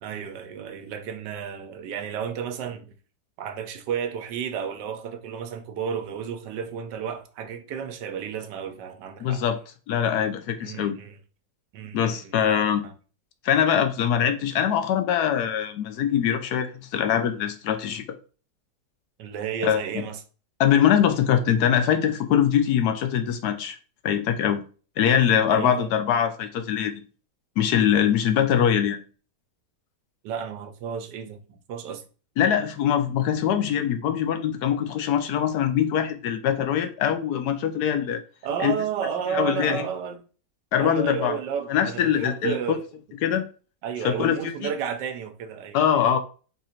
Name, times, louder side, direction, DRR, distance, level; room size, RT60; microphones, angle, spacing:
voice 1, 0.0-2.9 3.4-9.4 10.6-11.2 11.7-12.9 19.2-20.2 25.5-25.9 30.2-32.0 38.4-40.2 40.8-42.8 43.8-45.8, right 7 dB, 80° right, 1.3 m, -32 dB
voice 2, 9.2-9.6 9.9-11.0 11.9-12.8 13.4-18.0 19.6-20.0 20.6-23.8 24.0-24.6 25.0-27.0 27.6-29.0 32.4-38.2 38.6-38.7 39.3-39.9 40.7-41.4 41.7-42.8 43.2-43.4 44.0-44.7 45.7-46.2, left 9 dB, 75° left, 1.1 m, -23 dB
4.0 x 2.5 x 4.2 m
omnidirectional pair, 1.9 m